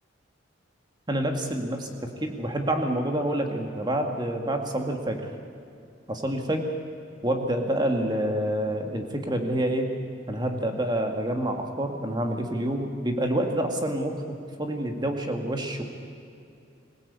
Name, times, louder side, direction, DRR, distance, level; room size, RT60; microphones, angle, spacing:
voice 1, 1.1-5.3 6.1-6.7 7.2-9.9 10.3-14.2 14.6-15.8, right 1 dB, 25° right, 3 dB, 2.2 m, -27 dB
26.0 x 17.5 x 8.4 m, 2.5 s
head